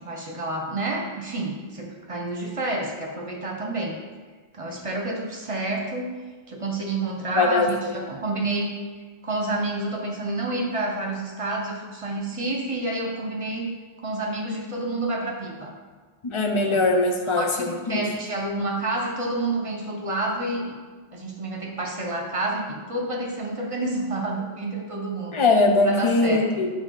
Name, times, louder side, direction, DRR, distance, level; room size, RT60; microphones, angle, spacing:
voice 1, 0.0-3.9 4.5-6.1 6.5-8.7 9.2-13.7 14.0-15.7 16.7-16.8 17.3-20.8 21.1-25.4 25.9-26.4, right 2 dB, 30° right, 0 dB, 1.1 m, -29 dB
voice 2, 7.3-8.0 16.2-18.0 25.3-26.7, left 3 dB, 30° left, 3 dB, 0.7 m, -21 dB
9.1 x 3.6 x 6.6 m, 1.4 s
omnidirectional pair, 1.2 m